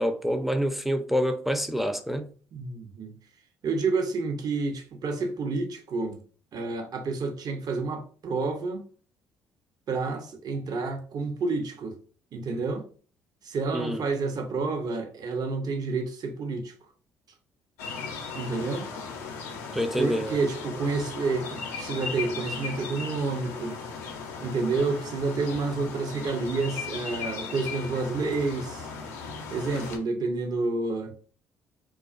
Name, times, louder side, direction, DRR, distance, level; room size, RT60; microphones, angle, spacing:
voice 1, 0.0-2.3 13.7-14.0 19.7-20.4, equal, ahead, 0.4 m, -27 dB
voice 2, 2.5-3.1 3.6-6.2 6.5-8.9 9.9-12.0 12.3-12.8 13.4-16.7 18.3-18.9 20.0-23.8 24.4-28.9 29.5-31.1, right 3 dB, 55° right, 0.6 m, -29 dB
sound 1, 17.8-30.0, left 5 dB, 90° left, 0.5 m, -37 dB
2.4 x 2.3 x 2.3 m
hypercardioid pair, 55°, 8 cm